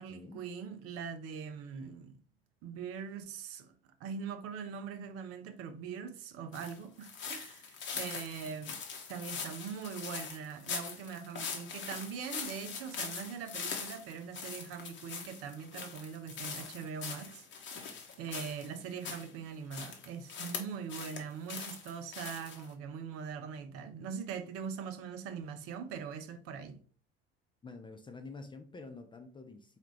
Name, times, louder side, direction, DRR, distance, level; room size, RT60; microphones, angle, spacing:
voice 1, 0.0-2.2 2.6-3.7 4.0-8.8 9.1-26.8, right 6 dB, 50° right, 0.6 m, -42 dB
sound 1, 6.5-19.3 19.7-21.2 21.5-22.7, left 6 dB, 35° left, 0.9 m, -42 dB
voice 2, 27.6-29.8, left 3 dB, 15° left, 0.5 m, -48 dB
4.4 x 2.4 x 3.2 m
figure-of-eight pair, 60°, 31 cm